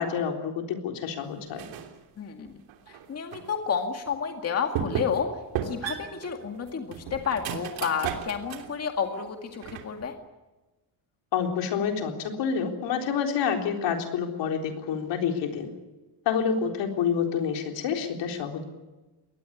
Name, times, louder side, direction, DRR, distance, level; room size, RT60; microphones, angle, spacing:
voice 1, 0.0-1.6 11.3-15.7 16.3-18.6, left 7 dB, 70° left, 3 dB, 4.0 m, -28 dB
sound 1, 1.5-2.0 2.4-3.5 4.1-4.2 4.7-5.3 5.5-8.8 9.1-10.1, right 8 dB, 90° right, 3.2 m, -34 dB
voice 2, 2.2-2.6 2.9-5.3 5.6-10.1, left 6 dB, 35° left, 4 dB, 2.1 m, -31 dB
22.5 x 19.0 x 10.0 m, 1.2 s
cardioid pair, 150°, 44 cm